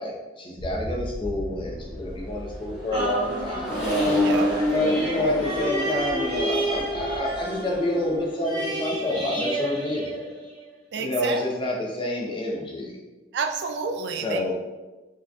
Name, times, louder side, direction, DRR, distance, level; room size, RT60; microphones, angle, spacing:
voice 1, 0.0-3.8 4.7-10.3 11.0-12.9 14.2-14.5, left 1 dB, 30° left, -2 dB, 0.6 m, -28 dB
sound 1, 0.6-6.6, equal, 75° left, 0.6 m, -39 dB
Accelerating revving vroom, 2.2-8.9, left 1 dB, 5° right, 1.3 m, -28 dB
sound 2, 2.9-10.8 11.3-11.4, right 2 dB, 25° right, 1.3 m, -31 dB
voice 2, 4.1-4.5 4.9-5.1 10.9-11.4 13.3-14.5, right 5 dB, 70° right, 6 dB, 0.4 m, -30 dB
4.6 x 2.8 x 2.3 m, 1.2 s
head